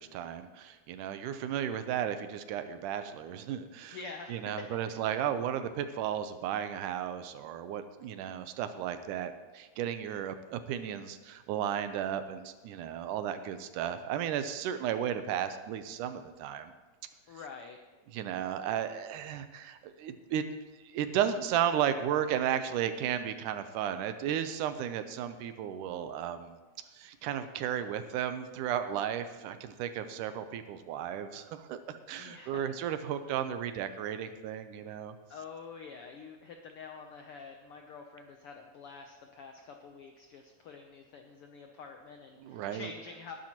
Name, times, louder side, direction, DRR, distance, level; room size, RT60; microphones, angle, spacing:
voice 1, 0.0-4.0 4.3-16.7 18.1-20.4 20.9-26.6 27.0-35.1 42.4-42.9, right 9 dB, 90° right, 10 dB, 2.3 m, -34 dB
voice 2, 3.9-4.6 5.1-5.2 17.3-17.8 32.2-32.6 35.3-43.3, left 5 dB, 80° left, 4 dB, 1.2 m, -47 dB
19.5 x 10.5 x 3.0 m, 1.3 s
omnidirectional pair, 3.5 m